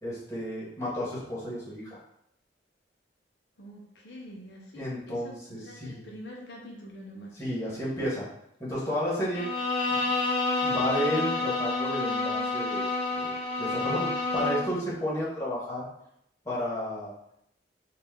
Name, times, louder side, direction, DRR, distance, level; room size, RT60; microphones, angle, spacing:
voice 1, 0.0-2.0 4.7-6.0 7.3-8.3 8.6-9.4 9.9-10.1 10.6-13.3 13.6-15.9 16.4-17.1, equal, 15° left, -7 dB, 1.6 m, -32 dB
voice 2, 3.6-7.3, equal, 85° left, -2 dB, 0.9 m, -45 dB
Bowed string instrument, 9.3-14.8, left 3 dB, 35° left, 0.6 m, -29 dB
4.1 x 2.7 x 3.7 m, 0.75 s
head